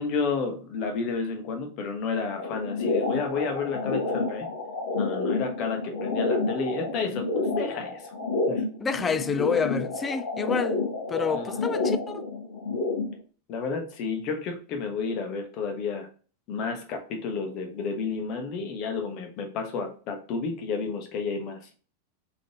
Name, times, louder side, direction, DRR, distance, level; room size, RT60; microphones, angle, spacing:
voice 1, 0.0-4.5 4.9-8.1 8.5-8.6 11.3-11.7 13.5-16.1 16.5-21.7, left 4 dB, 40° left, 1.1 m, -31 dB
Heart sonogram, 2.4-13.2, left 3 dB, 65° left, 1.4 m, -29 dB
voice 2, 8.8-10.8 11.1-12.2, left 5 dB, 20° left, 0.3 m, -28 dB
3.8 x 3.7 x 3.5 m
figure-of-eight pair, 90°, 0 cm